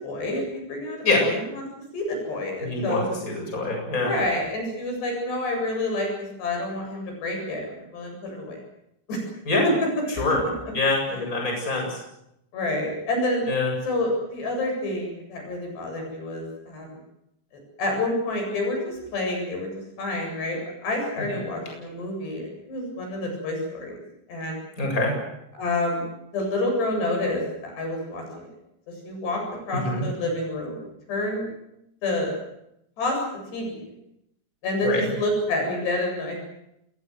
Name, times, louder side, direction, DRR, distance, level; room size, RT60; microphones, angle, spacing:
voice 1, 0.0-1.7 1.9-3.1 3.9-6.1 6.4-8.6 9.1-9.2 9.6-9.7 11.1-11.2 12.5-13.5 13.8-17.0 17.8-19.7 20.0-22.4 22.7-24.0 24.3-24.6 25.5-26.1 26.3-28.5 29.0-29.4 29.7-30.8 31.1-31.5 32.0-32.3 33.0-33.2 33.5-33.9 34.6-36.4, left 2 dB, 65° left, 2 dB, 10.0 m, -28 dB
voice 2, 2.6-4.1 9.5-9.6 10.2-10.4 10.7-12.0 13.5-13.7 21.3-21.4 24.8-25.1 29.7-30.1 34.8-35.1, left 3 dB, 15° left, 2 dB, 7.9 m, -25 dB
27.5 x 21.5 x 8.1 m, 0.82 s
omnidirectional pair, 5.1 m